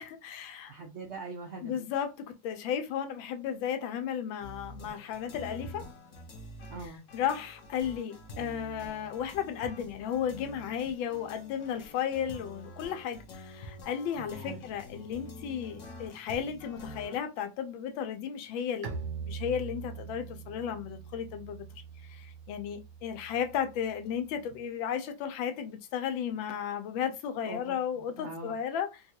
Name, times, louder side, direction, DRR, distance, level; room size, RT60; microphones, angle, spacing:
voice 1, 0.0-0.7 1.6-5.9 7.1-29.0, left 8 dB, 85° left, 1.4 m, -34 dB
voice 2, 0.7-1.8 6.7-7.0 14.3-14.6 27.5-28.5, right 3 dB, 80° right, 0.6 m, -43 dB
sound 1, 4.4-17.2, left 1 dB, 60° left, 0.8 m, -47 dB
Bowed string instrument, 18.8-24.4, right 6 dB, 60° right, 0.9 m, -43 dB
3.9 x 2.3 x 2.8 m
omnidirectional pair, 2.1 m